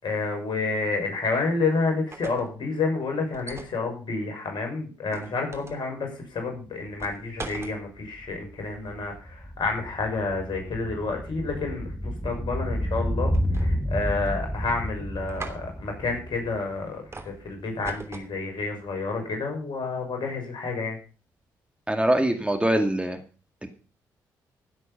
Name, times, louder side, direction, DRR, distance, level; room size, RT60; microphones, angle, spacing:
voice 1, 0.0-21.0, left 3 dB, 55° left, 3 dB, 6.3 m, -29 dB
sound 1, 1.9-2.5 3.3-3.8 5.1-5.8 7.0-7.8 13.3-13.9 14.3-14.8 15.3-15.6 17.1-17.4 17.8-18.3, right 3 dB, 30° right, 3.0 m, -40 dB
sound 2, 6.9-7.0 7.2-17.6 17.9-18.0, equal, 5° left, 1.6 m, -31 dB
voice 2, 21.9-23.2 23.6-23.7, right 1 dB, 10° right, 5 dB, 2.2 m, -23 dB
15.5 x 8.1 x 5.6 m, 0.37 s
hypercardioid pair, 45°, 9 cm